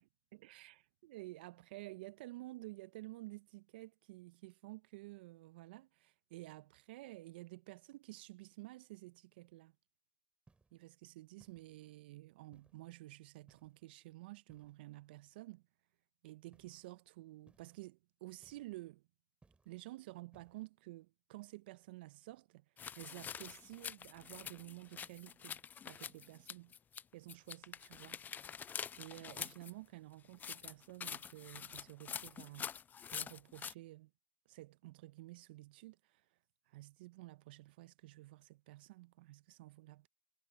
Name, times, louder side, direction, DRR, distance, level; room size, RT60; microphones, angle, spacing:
voice 1, 0.3-9.7 10.7-15.6 16.2-19.0 19.7-22.6 23.0-26.7 27.1-28.2 29.0-32.7 33.1-34.1 34.5-36.3 36.7-40.1, right 19 dB, 75° right, 0.6 m, -52 dB
sound 1, 10.5-10.8 11.4-12.0 12.5-12.9 13.5-13.9 14.5-15.0 16.5-16.9 17.5-17.9 18.4-18.9 19.4-19.8 20.3-20.7, right 3 dB, 20° right, 4.9 m, -69 dB
sound 2, 22.8-27.0 27.3-29.7 30.3-33.7, left 8 dB, 35° left, 0.3 m, -46 dB
hypercardioid pair, 65°, 5 cm